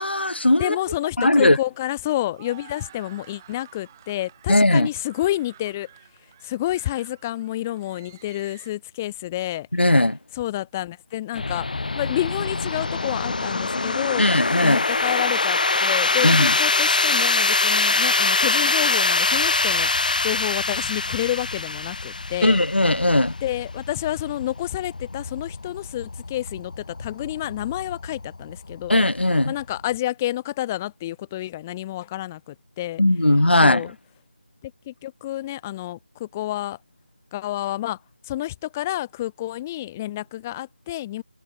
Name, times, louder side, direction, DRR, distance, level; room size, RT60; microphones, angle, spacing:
voice 1, 0.0-0.8 1.2-1.6 4.5-4.9 9.7-10.2 14.2-14.8 16.2-16.5 22.4-23.3 28.9-29.5 33.0-33.8, left 1 dB, 80° left, 1.0 m, -18 dB
voice 2, 0.6-5.9 6.4-9.7 10.3-11.7 11.9-14.3 14.6-22.6 23.4-29.0 29.5-33.0 33.6-33.9 34.6-36.8 37.3-38.0 38.3-41.2, left 14 dB, 15° left, 2.3 m, -29 dB
sound 1, 0.7-8.7, right 10 dB, 15° right, 6.3 m, -51 dB
sound 2, 11.3-30.0, left 3 dB, 50° left, 1.1 m, -24 dB
figure-of-eight pair, 165°, 6 cm